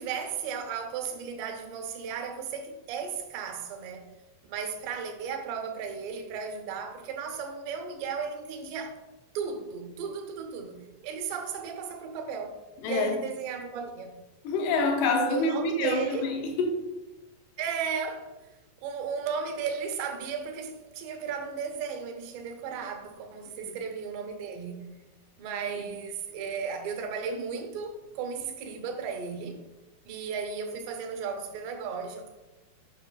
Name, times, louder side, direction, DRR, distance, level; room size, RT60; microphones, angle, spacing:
voice 1, 0.0-4.0 4.5-9.0 9.3-12.6 12.9-14.2 15.3-16.3 17.6-18.3 18.8-24.8 25.4-29.6 30.1-32.3, right 6 dB, 85° right, 3.0 m, -35 dB
voice 2, 12.8-13.1 14.4-16.7 23.6-23.8, left 3 dB, 80° left, 3.0 m, -27 dB
9.2 x 5.7 x 2.3 m
omnidirectional pair, 4.8 m